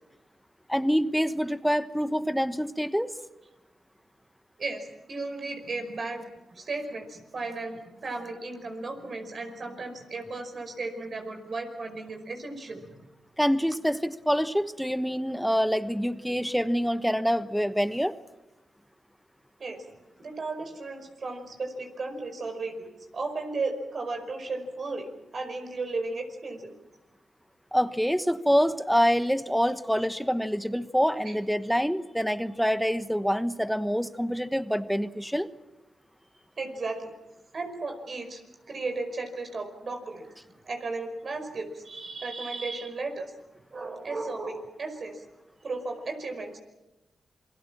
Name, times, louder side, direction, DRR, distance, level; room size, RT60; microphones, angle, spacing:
voice 1, 0.7-3.1 13.4-18.1 27.7-35.5, equal, ahead, 12 dB, 1.1 m, -26 dB
voice 2, 4.6-13.0 19.6-19.8 20.2-25.1 25.3-26.7 31.2-31.4 36.6-37.1 37.5-38.4 38.7-40.3 40.6-43.3 43.7-45.2 45.6-46.6, right 3 dB, 55° right, 5 dB, 5.2 m, -35 dB
28.0 x 20.5 x 7.4 m, 1.0 s
cardioid pair, 60°, 0 cm